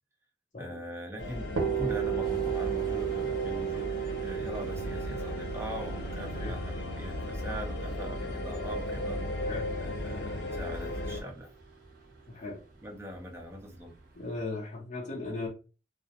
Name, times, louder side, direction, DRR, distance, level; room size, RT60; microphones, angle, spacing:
voice 1, 0.6-3.9 4.2-9.3 9.8-11.5 12.8-13.9, equal, 15° right, 0.4 m, -41 dB
sound 1, 1.2-11.2, left 1 dB, 85° left, 0.7 m, -36 dB
sound 2, 1.6-9.3, right 10 dB, 85° right, 0.5 m, -34 dB
sound 3, 2.2-14.4, right 1 dB, 50° right, 0.7 m, -53 dB
voice 2, 6.2-6.6 9.5-9.7 12.3-12.6 14.1-15.5, left 2 dB, 40° left, 0.6 m, -37 dB
2.4 x 2.0 x 2.7 m
head